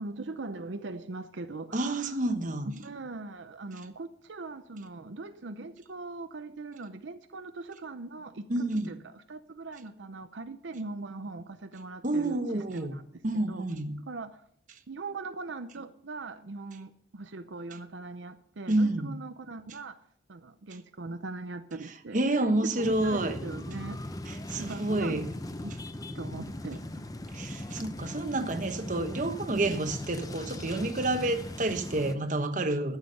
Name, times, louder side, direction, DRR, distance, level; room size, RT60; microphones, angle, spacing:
voice 1, 0.0-2.0 2.7-13.0 13.5-13.7 14.1-14.4 14.9-20.0 20.3-22.2 22.7-24.0 24.6-25.3 25.6-25.8 26.1-27.0, right 3 dB, 85° right, 0.7 m, -40 dB
voice 2, 1.7-2.7 8.5-9.0 12.0-13.0 13.2-14.0 18.7-19.2 22.1-23.4 24.3-25.3 27.3-33.0, right 2 dB, 45° right, 1.1 m, -29 dB
sound 1, 22.8-32.1, left 1 dB, 20° left, 0.7 m, -39 dB
13.0 x 7.4 x 7.7 m
head